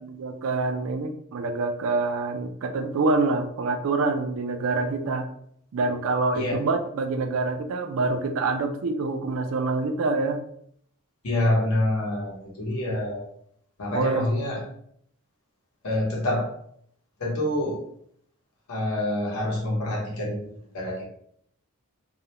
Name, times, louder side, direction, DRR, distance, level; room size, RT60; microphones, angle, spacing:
voice 1, 0.0-5.3 5.7-10.4 13.9-14.3, right 3 dB, 70° right, 7 dB, 0.4 m, -26 dB
voice 2, 11.2-13.3 13.8-14.6 15.8-16.5 17.2-17.8 18.7-21.0, left 1 dB, 90° left, -2 dB, 0.8 m, -26 dB
2.4 x 2.1 x 2.9 m, 0.65 s
head